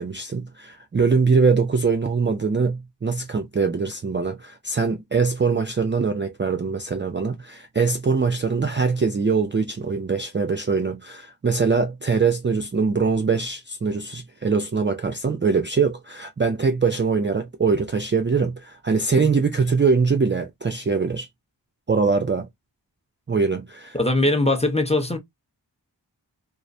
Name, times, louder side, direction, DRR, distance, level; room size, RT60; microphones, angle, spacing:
voice 1, 0.0-21.3 21.9-22.5 23.3-24.0, right 4 dB, 30° right, 0.3 m, -22 dB
voice 2, 23.9-25.2, left 2 dB, 15° left, 0.6 m, -20 dB
2.4 x 2.1 x 2.6 m
wide cardioid pair, 45°, 44 cm